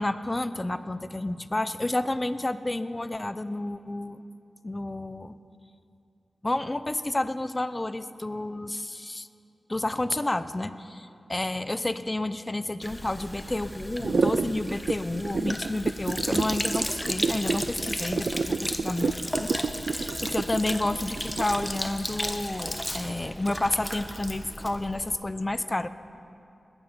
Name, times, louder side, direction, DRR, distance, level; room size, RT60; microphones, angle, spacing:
voice 1, 0.0-4.2 4.6-5.3 6.4-9.3 9.7-11.0 11.3-19.5 19.9-25.9, left 2 dB, 25° left, 13 dB, 0.6 m, -30 dB
Sink (filling or washing), 12.8-25.2, equal, 10° left, 1.0 m, -35 dB
sound 1, 14.0-21.8, right 4 dB, 70° right, 0.3 m, -28 dB
21.0 x 9.1 x 5.2 m, 2.7 s
cardioid pair, 45°, 0 cm